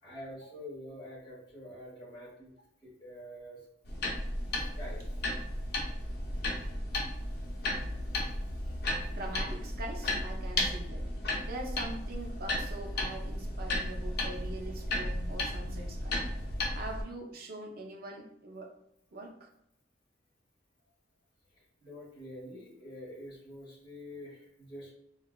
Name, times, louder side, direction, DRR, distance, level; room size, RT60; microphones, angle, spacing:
voice 1, 0.0-2.5 2.8-3.6 4.6-5.0 9.0-9.1 21.5-24.9, left 1 dB, 25° left, -6 dB, 1.1 m, -46 dB
sound 1, 3.8-17.0, left 1 dB, 55° left, 0.6 m, -34 dB
voice 2, 9.1-11.1 11.4-16.2 16.7-18.7 19.1-19.5, right 2 dB, 50° right, 2 dB, 0.5 m, -43 dB
3.6 x 2.3 x 2.2 m, 0.78 s
head